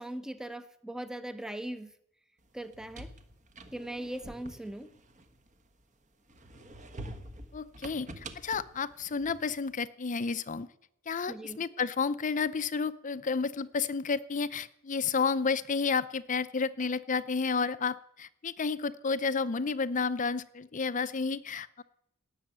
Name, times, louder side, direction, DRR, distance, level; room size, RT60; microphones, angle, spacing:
voice 1, 0.0-1.9 2.5-3.1 3.7-4.9 11.3-11.6, right 1 dB, 5° right, 11 dB, 0.8 m, -39 dB
sound 1, 2.6-5.8 6.3-9.7, right 1 dB, 35° right, 1.3 m, -47 dB
voice 2, 7.5-10.7 11.1-21.8, left 5 dB, 35° left, 15 dB, 0.6 m, -31 dB
17.5 x 7.1 x 9.2 m, 0.76 s
head